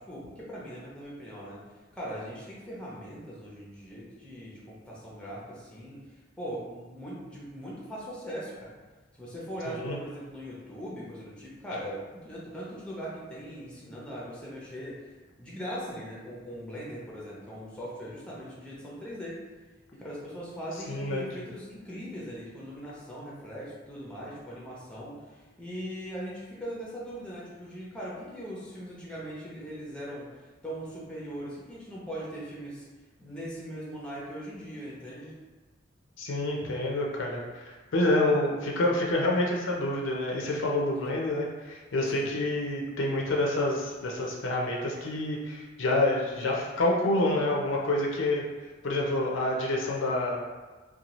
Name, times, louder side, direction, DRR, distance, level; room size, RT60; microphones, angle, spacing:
voice 1, 0.0-1.6 1.9-6.0 6.4-8.7 9.2-15.1 15.4-19.4 19.9-32.8 33.2-35.3 42.1-42.3, equal, 5° left, -6 dB, 0.6 m, -40 dB
voice 2, 9.7-10.0 20.9-21.3 36.2-48.5 48.8-50.4, left 2 dB, 70° left, -1 dB, 0.5 m, -28 dB
2.7 x 2.3 x 2.9 m, 1.3 s
head